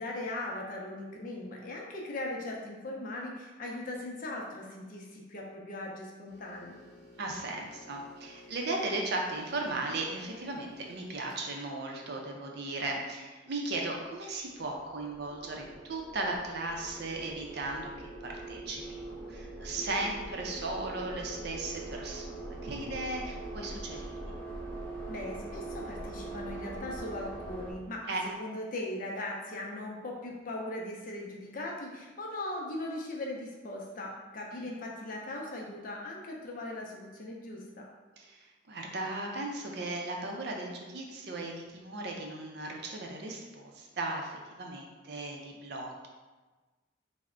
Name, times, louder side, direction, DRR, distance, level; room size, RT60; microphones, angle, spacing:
voice 1, 0.0-6.8 25.1-37.8, left 1 dB, 45° left, -1 dB, 0.5 m, -39 dB
sound 1, 6.3-11.5, left 1 dB, 60° left, 0.8 m, -55 dB
voice 2, 7.2-24.3 28.1-28.2 34.5-34.6 38.2-46.1, right 2 dB, 55° right, 0 dB, 0.5 m, -37 dB
sound 2, 14.2-27.7, right 2 dB, 10° left, 0.7 m, -42 dB
3.3 x 2.1 x 3.6 m, 1.3 s
head